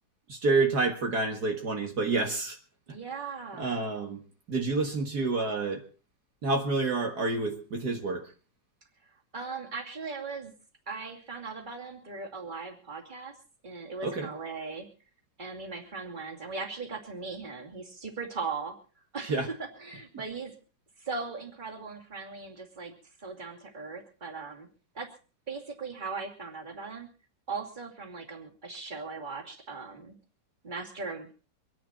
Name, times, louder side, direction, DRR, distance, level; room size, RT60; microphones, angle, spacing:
voice 1, 0.3-2.6 2.9-3.0 3.6-4.2 4.5-5.8 6.4-8.3 14.0-14.3 19.2-19.5, right 3 dB, 60° right, 3 dB, 2.3 m, -28 dB
voice 2, 2.9-3.8 9.0-10.5 10.9-13.3 13.6-14.9 15.4-18.8 19.1-20.5 21.0-22.9 23.2-24.7 24.9-25.1 25.5-27.1 27.5-30.2 30.6-31.3, right 4 dB, 25° right, 3 dB, 2.8 m, -38 dB
25.5 x 10.5 x 4.4 m, 0.38 s
omnidirectional pair, 1.9 m